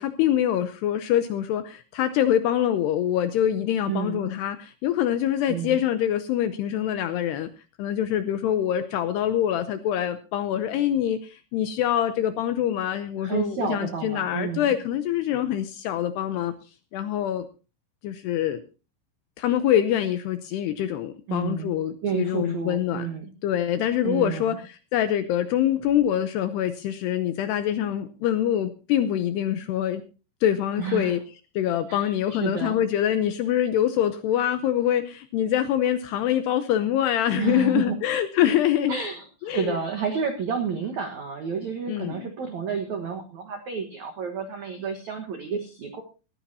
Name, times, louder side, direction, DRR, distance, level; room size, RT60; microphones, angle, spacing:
voice 1, 0.0-7.5 7.8-16.5 16.9-17.5 18.0-18.6 19.4-23.1 23.4-30.0 30.4-31.2 31.6-39.0 39.4-39.8 41.9-42.3, left 11 dB, 80° left, 11 dB, 2.5 m, -25 dB
voice 2, 3.9-4.3 5.5-5.8 13.2-14.7 21.3-21.7 22.0-23.3 24.0-24.6 30.8-31.2 31.9-32.8 37.4-38.0 38.9-46.0, right 6 dB, 75° right, 5 dB, 1.6 m, -30 dB
19.0 x 14.5 x 2.7 m, 0.33 s
omnidirectional pair, 5.6 m